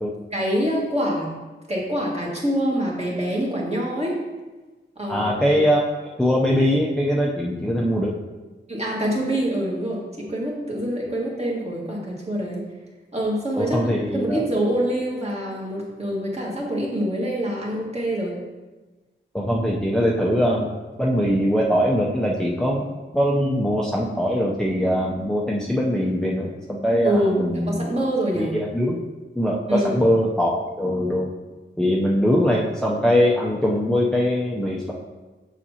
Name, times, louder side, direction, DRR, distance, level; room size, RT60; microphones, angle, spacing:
voice 1, 0.3-1.3 1.7-4.2 5.0-5.6 8.7-12.6 13.1-18.4 27.0-28.6 29.7-29.9, equal, 30° right, -4 dB, 1.8 m, -25 dB
voice 2, 5.1-5.8 6.2-8.1 13.6-14.5 19.3-20.7 21.0-22.9 23.1-27.9 28.3-29.0 29.3-31.3 31.8-34.9, equal, 5° left, -4 dB, 0.6 m, -22 dB
7.1 x 5.8 x 2.8 m, 1.2 s
wide cardioid pair, 90°, 20 cm